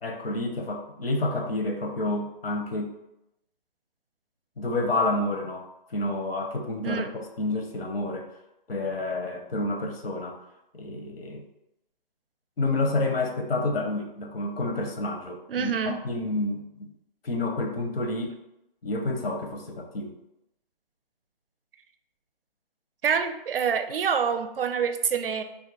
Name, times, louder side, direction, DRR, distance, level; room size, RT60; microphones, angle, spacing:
voice 1, 0.0-2.9 4.6-7.1 7.4-8.3 8.7-10.4 10.7-11.4 12.6-16.9 17.2-18.4 18.8-20.1, left 2 dB, 90° left, 3 dB, 0.8 m, -29 dB
voice 2, 15.5-16.0 23.0-25.4, right 7 dB, 70° right, 8 dB, 0.4 m, -26 dB
2.5 x 2.5 x 4.0 m, 0.87 s
hypercardioid pair, 165°, 29 cm